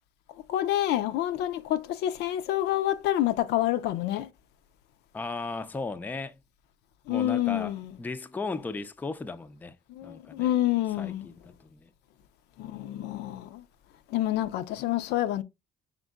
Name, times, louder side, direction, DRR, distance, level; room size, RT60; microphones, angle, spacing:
voice 1, 0.5-4.3 7.1-7.9 9.9-11.3 12.6-13.6 14.1-15.4, left 13 dB, 80° left, 0.5 m, -28 dB
voice 2, 5.1-6.4 7.1-7.7 8.0-9.8 10.0-10.5 11.0-11.9, left 3 dB, 10° left, 0.3 m, -36 dB
5.1 x 3.5 x 2.2 m
cardioid pair, 110°, 17 cm